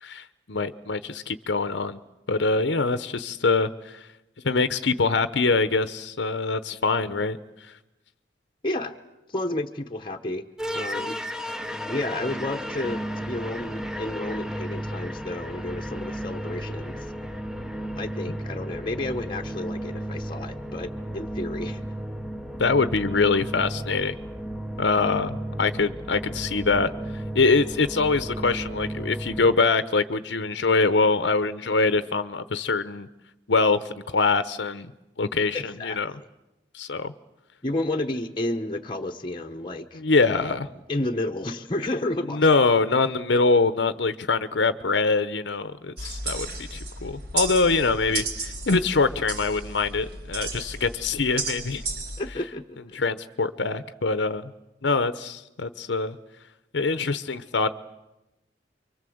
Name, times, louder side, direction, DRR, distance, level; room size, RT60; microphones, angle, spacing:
voice 1, 0.0-2.0 2.3-4.1 4.4-7.4 7.7-7.8 22.6-24.2 24.8-33.1 33.5-34.9 35.2-36.1 36.7-37.1 39.9-40.7 42.3-51.8 52.9-54.5 54.8-56.2 56.7-57.7, left 4 dB, 75° left, 12 dB, 0.9 m, -24 dB
voice 2, 8.6-8.9 9.3-10.5 10.7-11.2 11.9-17.1 18.0-21.8 35.5-36.2 37.6-40.0 40.4-40.5 40.9-42.5 52.2-53.0, left 1 dB, 25° left, 4 dB, 1.1 m, -31 dB
sound 1, 10.6-29.6, equal, 5° right, 0.9 m, -34 dB
sound 2, 46.0-52.2, right 3 dB, 65° right, 4.5 m, -33 dB
29.5 x 24.0 x 7.9 m, 1.0 s
head